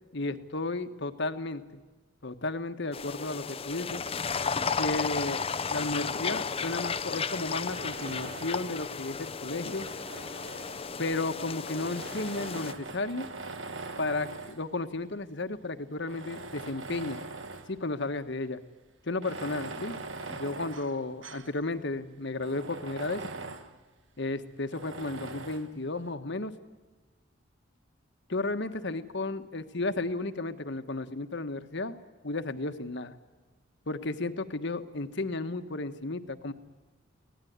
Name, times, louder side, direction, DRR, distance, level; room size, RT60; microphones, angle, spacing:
voice 1, 0.1-1.8 2.2-4.0 4.8-5.4 5.7-9.9 11.0-13.2 14.0-17.2 17.7-18.6 19.0-23.3 24.2-26.5 28.3-32.0 32.2-33.1 33.9-36.5, left 2 dB, 60° left, 9 dB, 1.4 m, -33 dB
sound 1, 2.9-12.7, left 5 dB, 30° left, 0.7 m, -34 dB
Tools, 7.7-8.8 9.5-11.1 11.8-14.7 15.4-15.5 16.0-17.8 18.1-18.2 19.1-21.6 22.0-22.1 22.4-23.8 24.7-25.7, right 3 dB, 65° right, 1.7 m, -42 dB
23.5 x 18.0 x 9.5 m, 1.2 s
head